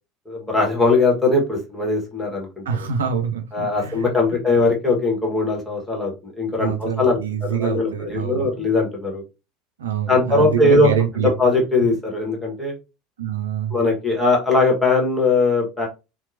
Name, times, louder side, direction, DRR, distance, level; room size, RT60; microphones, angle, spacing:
voice 1, 0.3-2.6 3.5-9.2 10.1-10.9 11.4-12.7 13.7-15.9, left 3 dB, 10° left, -1 dB, 1.3 m, -20 dB
voice 2, 2.7-4.4 6.6-8.7 9.8-11.3 13.2-13.7, right 7 dB, 70° right, 6 dB, 0.4 m, -25 dB
2.8 x 2.2 x 2.6 m, 0.27 s
figure-of-eight pair, 70°, 0 cm